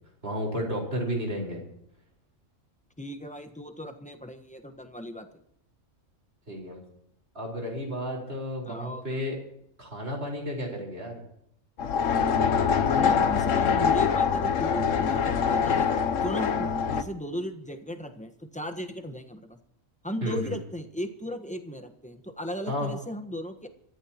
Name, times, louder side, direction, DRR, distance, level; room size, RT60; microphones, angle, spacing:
voice 1, 0.2-1.6 6.5-6.8 7.3-9.4 9.8-11.2 20.2-20.5 22.7-22.9, equal, 50° right, -1 dB, 4.9 m, -32 dB
voice 2, 3.0-5.4 8.6-9.2 12.8-15.9 16.2-19.6 20.0-23.7, equal, 5° left, 6 dB, 1.2 m, -36 dB
sound 1, 11.8-17.0, left 6 dB, 70° left, 1.2 m, -24 dB
26.0 x 14.5 x 3.0 m, 0.73 s
omnidirectional pair, 1.4 m